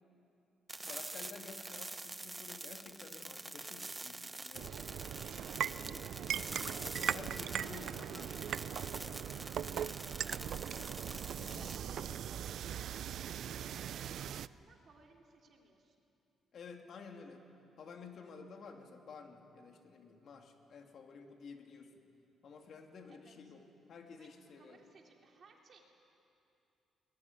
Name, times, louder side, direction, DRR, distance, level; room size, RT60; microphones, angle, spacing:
sound 1, 0.7-11.8, right 2 dB, 20° right, 0.9 m, -46 dB
voice 1, 0.8-5.1 5.7-6.1 7.0-10.1 11.4-12.2 16.5-17.4 17.8-22.0 22.4-24.8, left 5 dB, 60° left, 3 dB, 2.8 m, -53 dB
sound 2, 4.5-14.5, right 9 dB, 70° right, 0.5 m, -40 dB
voice 2, 6.0-6.5 11.3-13.0 13.6-16.0 23.1-23.5 24.1-25.9, right 4 dB, 50° right, 1 dB, 4.2 m, -63 dB
22.5 x 21.0 x 10.0 m, 2.8 s
cardioid pair, 90°, 0 cm